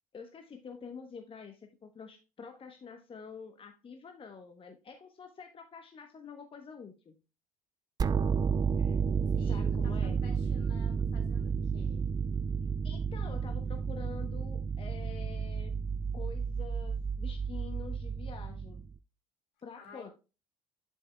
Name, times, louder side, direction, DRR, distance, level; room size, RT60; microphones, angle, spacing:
voice 1, 0.1-7.2 8.8-9.0 9.4-10.2 12.8-15.8 16.1-18.8 19.6-20.1, left 5 dB, 30° left, 6 dB, 1.0 m, -47 dB
sound 1, 8.0-19.0, right 6 dB, 20° right, 0.4 m, -32 dB
voice 2, 9.3-12.1 19.7-20.1, left 4 dB, 60° left, 3 dB, 3.2 m, -54 dB
11.0 x 5.5 x 2.3 m, 0.30 s
figure-of-eight pair, 60°, 19 cm